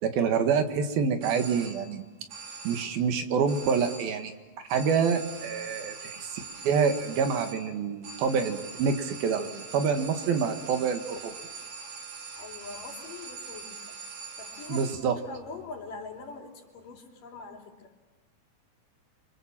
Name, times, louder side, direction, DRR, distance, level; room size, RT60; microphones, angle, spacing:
voice 1, 0.0-2.0 2.7-4.3 4.7-11.3 14.7-15.2, right 6 dB, 75° right, 7 dB, 3.5 m, -27 dB
sound 1, 1.2-2.0 2.3-3.1 3.5-4.3 4.7-15.2, right 5 dB, 60° right, 4.0 m, -43 dB
voice 2, 12.4-14.0 14.4-17.9, left 4 dB, 60° left, 2 dB, 4.8 m, -43 dB
28.0 x 25.5 x 7.5 m, 1.3 s
omnidirectional pair, 4.3 m